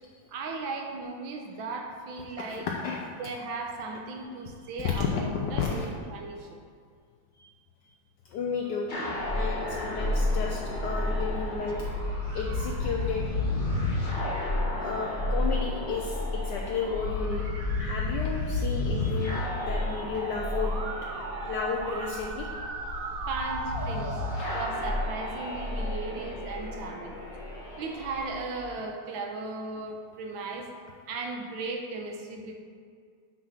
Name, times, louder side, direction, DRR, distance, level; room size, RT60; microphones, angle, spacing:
voice 1, 0.3-2.7 3.2-6.6 12.3-13.2 17.3-18.5 20.1-20.4 21.3-22.1 23.3-24.2 24.5-27.2 27.8-30.7 31.1-32.5, right 3 dB, 90° right, 2 dB, 1.6 m, -37 dB
voice 2, 4.8-5.9 8.3-8.9 9.3-11.9 12.3-13.2 14.8-17.4 17.8-20.7 21.4-22.5 24.4-24.5, left 5 dB, 70° left, -1 dB, 1.2 m, -32 dB
sound 1, 8.9-28.3, left 2 dB, 30° left, 1.1 m, -31 dB
Musical instrument, 19.4-25.0, right 3 dB, 55° right, 1.1 m, -37 dB
6.2 x 5.9 x 5.7 m, 2.1 s
omnidirectional pair, 2.1 m